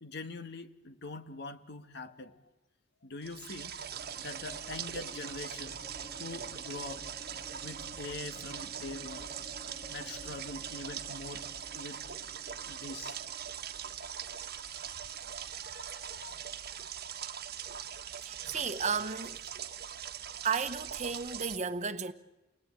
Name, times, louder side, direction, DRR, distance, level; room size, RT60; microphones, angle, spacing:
voice 1, 0.0-2.4 3.0-3.8 4.2-5.8 6.2-7.1 7.6-9.3 9.9-11.5 11.7-12.0 12.7-13.2 15.0-16.3, left 3 dB, 60° left, 1.7 m, -44 dB
sound 1, 3.2-21.6, right 9 dB, 50° right, 1.4 m, -42 dB
sound 2, 3.8-15.6, equal, 40° left, 1.9 m, -52 dB
voice 2, 18.2-19.4 20.4-22.1, right 5 dB, 35° right, 1.1 m, -33 dB
30.0 x 20.0 x 8.9 m
head